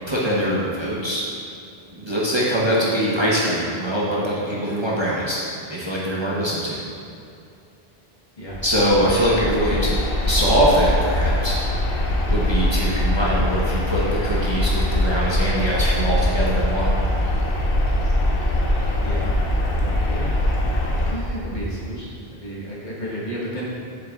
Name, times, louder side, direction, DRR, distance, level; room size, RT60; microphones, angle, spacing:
voice 1, 0.0-1.2 1.9-5.4 5.7-6.8 8.6-11.6 12.3-16.9, equal, 30° right, -7 dB, 0.9 m, -22 dB
sound 1, 8.5-21.1, left 1 dB, 65° left, 1.0 m, -22 dB
voice 2, 19.0-19.4 19.8-20.3 21.1-23.6, right 1 dB, 45° left, -7 dB, 1.5 m, -32 dB
7.7 x 6.7 x 2.4 m, 2.5 s
omnidirectional pair, 1.0 m